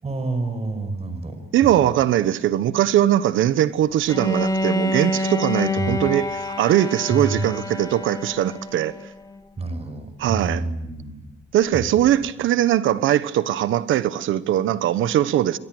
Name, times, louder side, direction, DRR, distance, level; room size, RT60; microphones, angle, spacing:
voice 1, 0.0-1.9 5.8-6.1 7.1-7.4 9.6-11.3 11.7-11.8, right 3 dB, 30° right, 5.6 m, -28 dB
voice 2, 1.5-8.9 10.2-10.6 11.5-15.6, right 12 dB, 85° right, 1.3 m, -20 dB
Bowed string instrument, 4.1-9.1, left 1 dB, 20° left, 2.3 m, -27 dB
27.0 x 23.0 x 8.0 m
cardioid pair, 90°, 20 cm